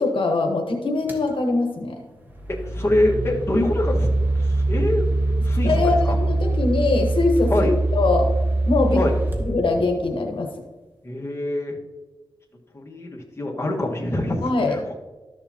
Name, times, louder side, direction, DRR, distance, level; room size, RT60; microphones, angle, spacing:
voice 1, 0.0-2.1 5.6-8.3 8.7-9.0 9.4-10.5 14.4-14.8, left 3 dB, 80° left, 2 dB, 1.1 m, -22 dB
sound 1, 1.1-1.3 2.2-10.2, right 2 dB, 20° right, 1.5 m, -23 dB
voice 2, 2.5-4.1 4.4-5.1 5.4-6.2 7.5-7.7 8.9-9.2 11.0-11.7 12.7-14.4 14.7-14.8, left 1 dB, 30° left, -1 dB, 1.5 m, -24 dB
13.0 x 6.8 x 2.9 m, 1.3 s
wide cardioid pair, 85°, 9 cm